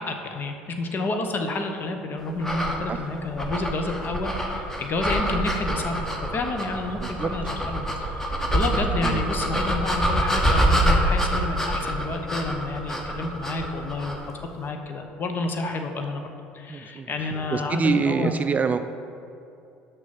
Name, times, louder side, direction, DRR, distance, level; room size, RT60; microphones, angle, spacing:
voice 1, 0.0-14.2 14.5-16.2 16.5-18.3, left 2 dB, 35° left, 5 dB, 0.9 m, -30 dB
sound 1, 2.4-14.3, equal, 10° left, 1.2 m, -26 dB
voice 2, 16.7-18.8, right 5 dB, 25° right, 9 dB, 0.4 m, -26 dB
6.1 x 6.1 x 5.6 m, 2.7 s
figure-of-eight pair, 60°, 6 cm